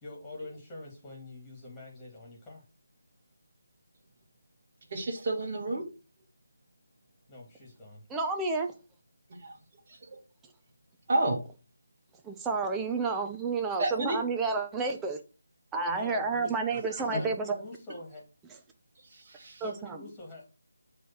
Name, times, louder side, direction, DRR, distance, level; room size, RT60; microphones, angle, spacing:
voice 1, 0.0-2.6 7.3-8.0 15.9-18.2 19.5-20.5, left 2 dB, 10° left, 2.7 m, -45 dB
voice 2, 4.9-5.8 9.4-9.5 10.1-10.2 11.1-11.4 13.8-14.2 17.1-17.2 19.1-19.6, right 2 dB, 35° right, 2.1 m, -30 dB
voice 3, 8.1-8.7 12.2-15.2 15.7-17.5 19.6-20.0, right 4 dB, 10° right, 0.7 m, -30 dB
7.6 x 3.4 x 6.0 m
figure-of-eight pair, 155°, 0 cm